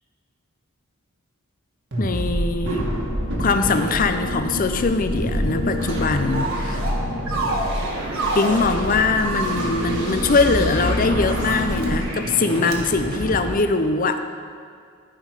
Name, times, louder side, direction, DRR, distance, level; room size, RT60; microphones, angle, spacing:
sound 1, 1.9-13.5, right 1 dB, 55° right, 1.8 m, -30 dB
voice 1, 2.0-2.9 3.4-6.8 8.3-14.2, left 3 dB, 40° left, 8 dB, 0.6 m, -22 dB
sound 2, 2.7-12.0, left 1 dB, 90° left, 1.1 m, -28 dB
sound 3, 6.3-7.0 7.3-8.7 9.2-11.0 11.6-11.9 12.6-12.8, right 2 dB, 85° right, 1.6 m, -29 dB
14.0 x 5.5 x 4.9 m, 2.2 s
head